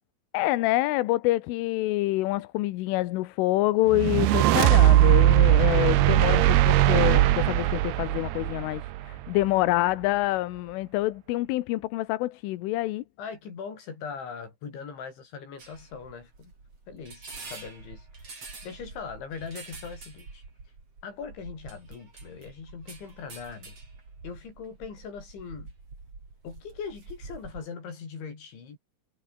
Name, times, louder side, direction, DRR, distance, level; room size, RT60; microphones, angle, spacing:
voice 1, 0.3-13.0, left 18 dB, 75° left, 3.5 m, -26 dB
sound 1, 3.9-9.3, right 15 dB, 70° right, 2.7 m, -20 dB
voice 2, 13.2-16.5 16.9-18.4 18.6-20.4 21.0-23.8 24.2-25.7 26.4-28.8, left 6 dB, 60° left, 8.3 m, -40 dB
sound 2, 15.6-27.7, right 3 dB, 30° right, 6.5 m, -46 dB
omnidirectional pair, 5.9 m